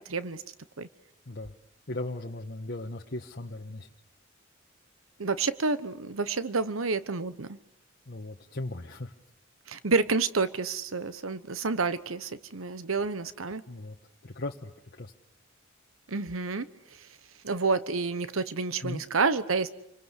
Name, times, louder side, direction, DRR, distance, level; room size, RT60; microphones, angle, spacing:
voice 1, 0.1-0.4 0.8-0.9 5.2-7.6 9.7-13.6 16.1-16.7 17.4-19.7, right 4 dB, 85° right, 13 dB, 1.1 m, -29 dB
voice 2, 1.9-3.9 8.1-9.1 13.7-14.0 14.2-14.7 15.0-15.1 18.8-19.0, left 2 dB, 50° left, 1 dB, 1.3 m, -37 dB
29.0 x 25.0 x 8.2 m, 0.80 s
head